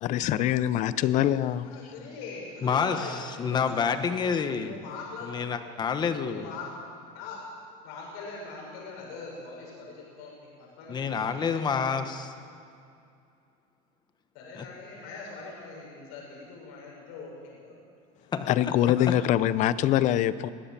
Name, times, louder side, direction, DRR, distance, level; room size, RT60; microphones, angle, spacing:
voice 1, 0.0-1.7 18.5-20.5, left 12 dB, 40° left, 16 dB, 0.7 m, -24 dB
voice 2, 1.6-3.9 4.1-5.3 6.3-6.7 7.1-7.4 7.8-11.9 14.3-17.8 18.9-19.1, left 4 dB, 70° left, -2 dB, 6.5 m, -42 dB
voice 3, 2.6-3.1 3.4-4.8 5.2-6.5 10.9-12.3 14.5-14.7 18.3-18.7, left 6 dB, 25° left, 9 dB, 1.2 m, -28 dB
21.5 x 16.0 x 7.5 m, 2.5 s
cardioid pair, 155°, 18 cm